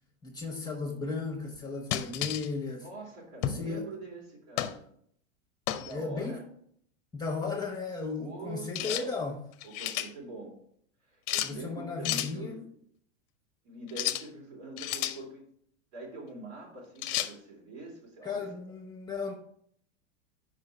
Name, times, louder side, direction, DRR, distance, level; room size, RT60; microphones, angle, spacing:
voice 1, 0.2-2.9 3.4-3.9 5.9-6.5 7.1-9.4 11.4-12.5 18.2-19.3, left 4 dB, 10° left, 1 dB, 1.2 m, -35 dB
sound 1, 1.9-2.5 3.4-3.7 4.6-4.8 5.7-5.9 8.7-9.1 9.5-10.1 11.3-11.5 12.0-12.3 13.9-14.3 14.8-15.2 17.0-17.3, left 13 dB, 45° left, 0.7 m, -32 dB
voice 2, 2.8-4.8 5.8-6.4 8.2-9.2 9.6-10.5 11.0-12.7 13.6-15.4 15.9-18.4, right 2 dB, 65° right, -3 dB, 3.0 m, -44 dB
5.0 x 4.8 x 5.6 m, 0.65 s
hypercardioid pair, 110°, 36 cm